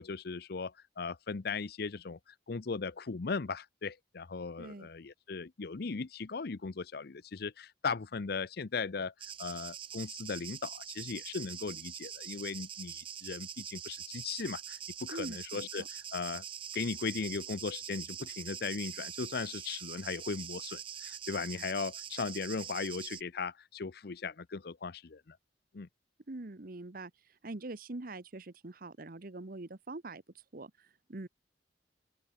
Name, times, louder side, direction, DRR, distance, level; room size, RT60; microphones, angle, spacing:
voice 1, 0.0-16.4 16.7-25.4 25.7-25.9, left 4 dB, 60° left, 0.6 m, -38 dB
voice 2, 4.6-4.9 15.1-15.9 26.3-27.1 27.4-30.2 30.5-31.3, right 2 dB, 55° right, 1.1 m, -43 dB
sound 1, 9.2-23.2, right 9 dB, 30° right, 0.6 m, -44 dB
open air
head